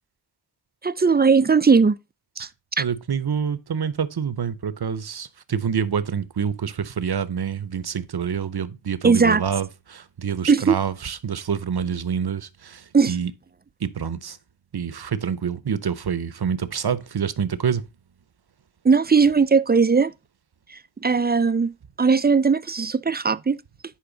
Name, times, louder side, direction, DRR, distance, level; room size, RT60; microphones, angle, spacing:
voice 1, 0.8-2.0 2.4-2.5 2.8-2.9 9.0-9.4 10.5-10.8 12.9-13.1 18.8-20.1 20.7-23.6, right 5 dB, 25° right, 0.4 m, -18 dB
voice 2, 2.8-13.3 13.8-14.4 14.7-17.8, right 7 dB, 55° right, 0.8 m, -27 dB
10.5 x 4.5 x 3.9 m
wide cardioid pair, 45°, 45 cm